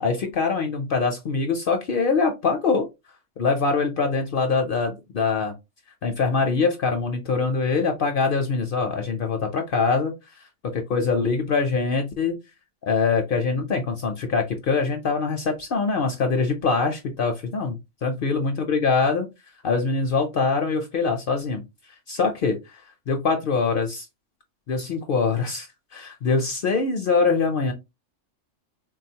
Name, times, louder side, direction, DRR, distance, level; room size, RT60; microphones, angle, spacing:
voice 1, 0.0-2.9 3.4-5.5 6.0-10.1 10.7-12.4 12.9-19.3 19.6-21.6 22.1-24.1 24.7-25.7 25.9-27.7, left 4 dB, 60° left, 0.6 m, -23 dB
3.7 x 2.3 x 2.7 m
omnidirectional pair, 1.3 m